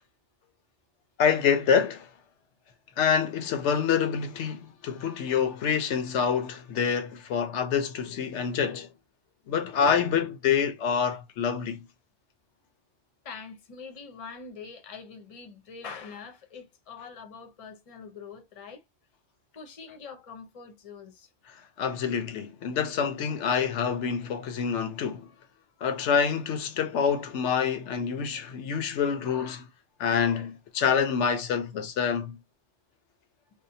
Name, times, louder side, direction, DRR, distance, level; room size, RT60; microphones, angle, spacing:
voice 1, 1.2-2.1 3.0-8.9 9.5-11.8 21.5-25.3 25.8-29.7 30.0-32.4, left 7 dB, 70° left, 0.8 m, -27 dB
voice 2, 13.2-18.8 19.5-21.3, left 5 dB, 35° left, 0.7 m, -44 dB
2.6 x 2.1 x 2.6 m
omnidirectional pair, 1.3 m